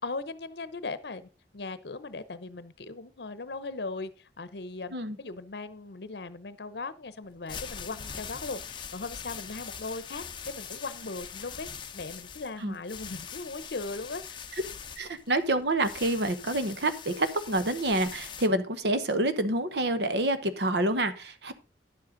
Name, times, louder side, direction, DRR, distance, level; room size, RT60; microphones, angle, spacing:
voice 1, 0.0-11.7 11.9-14.5, left 3 dB, 70° left, 15 dB, 0.8 m, -38 dB
sound 1, 7.3-18.5, left 7 dB, 25° left, 0.7 m, -42 dB
voice 2, 15.0-21.5, right 1 dB, 70° right, 11 dB, 1.0 m, -27 dB
10.0 x 7.9 x 3.8 m, 0.33 s
head